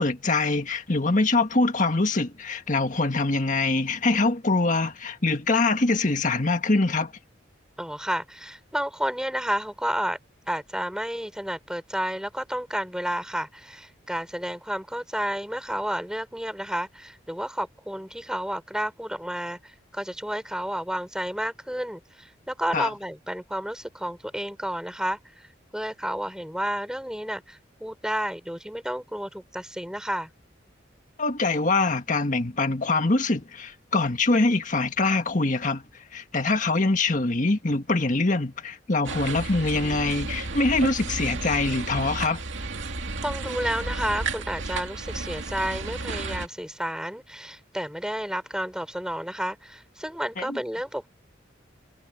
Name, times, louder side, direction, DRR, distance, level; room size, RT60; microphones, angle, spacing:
voice 1, 0.0-7.1 22.7-22.9 31.2-35.8 36.1-42.4 50.4-50.6, left 3 dB, 45° left, 1.7 m, -24 dB
voice 2, 7.8-10.2 10.5-25.5 25.7-30.3 43.2-51.1, equal, 5° right, 5.2 m, -31 dB
sound 1, 39.0-46.5, right 3 dB, 85° right, 2.3 m, -32 dB
head